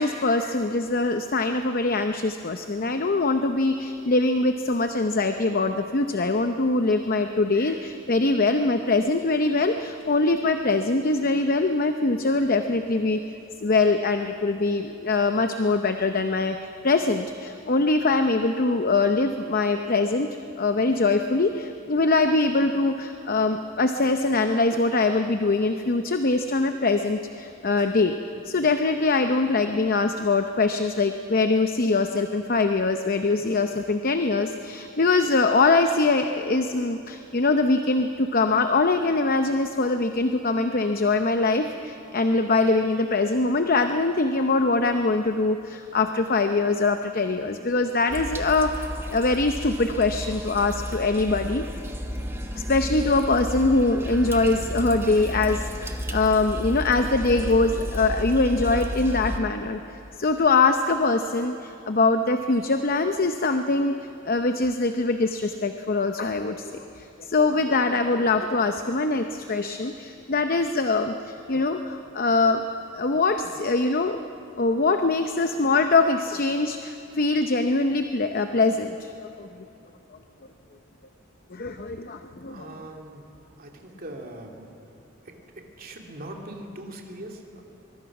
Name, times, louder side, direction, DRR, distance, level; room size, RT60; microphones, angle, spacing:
voice 1, 0.0-13.2 13.6-20.3 20.6-28.1 28.4-51.6 52.6-59.8 60.2-63.9 64.3-72.6 72.9-74.2 74.6-79.1 79.4-79.5 81.5-82.7, left 3 dB, 45° left, 7 dB, 0.7 m, -23 dB
sound 1, 48.1-59.4, equal, 10° right, 1.4 m, -32 dB
voice 2, 82.4-83.2 83.6-84.6 85.2-85.3 85.8-87.6, right 1 dB, 45° right, 1 dB, 2.6 m, -40 dB
24.0 x 22.5 x 6.0 m, 2.8 s
head